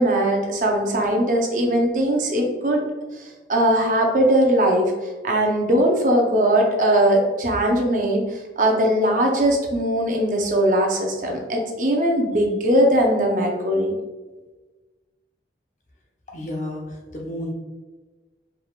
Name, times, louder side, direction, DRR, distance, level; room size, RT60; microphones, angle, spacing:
voice 1, 0.0-2.9 3.2-4.9 5.2-13.9, right 1 dB, 45° right, 1 dB, 0.7 m, -20 dB
voice 2, 16.3-17.5, left 1 dB, 40° left, 0 dB, 0.8 m, -31 dB
4.7 x 3.4 x 2.4 m, 1.2 s
head